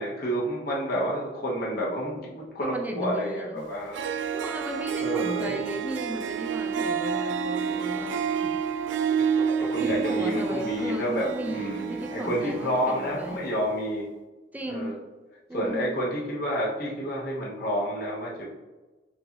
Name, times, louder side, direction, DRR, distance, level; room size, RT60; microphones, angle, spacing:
voice 1, 0.0-4.0 5.0-5.6 9.6-14.0 14.6-14.9 15.5-18.5, equal, 60° left, -4 dB, 1.1 m, -29 dB
voice 2, 2.6-3.6 4.3-8.3 9.1-13.5 14.5-15.0 15.5-15.9, right 1 dB, 10° right, 2 dB, 0.4 m, -35 dB
Harp, 3.6-3.7 3.9-13.5, right 6 dB, 85° right, 0.4 m, -29 dB
4.6 x 2.7 x 4.1 m, 1.2 s
head